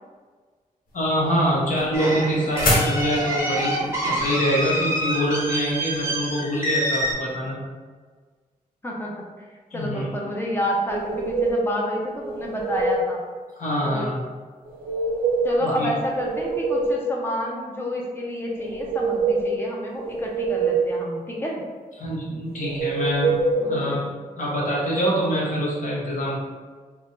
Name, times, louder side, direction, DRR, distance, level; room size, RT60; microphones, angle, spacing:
sound 1, 0.9-6.1, left 1 dB, 80° left, 1.0 m, -28 dB
voice 1, 0.9-7.6 9.7-10.1 13.6-14.3 15.6-15.9 22.0-23.4 23.7-24.1 24.4-26.4, equal, 60° left, -6 dB, 1.0 m, -25 dB
sound 2, 1.9-7.1, equal, 20° right, 0.7 m, -26 dB
voice 2, 8.8-9.2 9.7-13.2 13.8-14.1 15.4-21.6 23.6-24.0, equal, 15° left, -2 dB, 0.6 m, -29 dB
sound 3, 10.9-11.7 12.2-13.1 14.7-15.7 16.0-17.1 18.5-19.6 20.0-21.0 22.6-23.6, right 3 dB, 80° right, 0.5 m, -25 dB
3.5 x 2.1 x 3.9 m, 1.5 s
wide cardioid pair, 165°, 15 cm